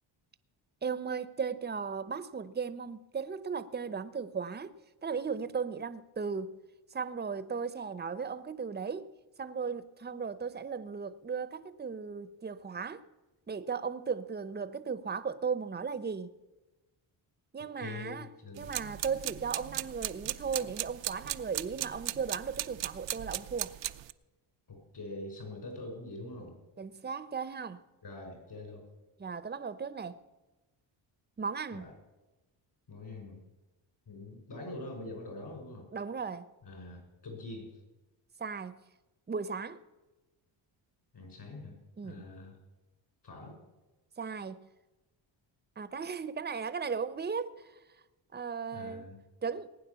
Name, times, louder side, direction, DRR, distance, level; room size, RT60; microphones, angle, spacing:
voice 1, 0.8-4.7 5.0-6.6 6.9-9.1 9.4-13.0 13.5-16.3 17.5-18.3 18.6-23.7 26.8-27.8 29.2-30.2 31.4-31.8 35.9-36.5 38.4-38.8 39.3-39.8 42.0-42.2 44.2-44.7 45.8-47.6 48.3-49.1 49.4-49.7, right 5 dB, 20° right, 0.9 m, -36 dB
voice 2, 17.8-18.7 24.7-26.6 28.0-28.9 31.7-31.9 32.9-33.4 34.1-35.9 36.6-37.8 41.1-41.8 42.0-42.6 43.2-43.6 48.7-49.2, left 2 dB, 55° left, 5.6 m, -44 dB
sound 1, 18.6-24.1, right 14 dB, 65° right, 0.7 m, -38 dB
19.5 x 9.2 x 7.0 m
cardioid pair, 90°, 47 cm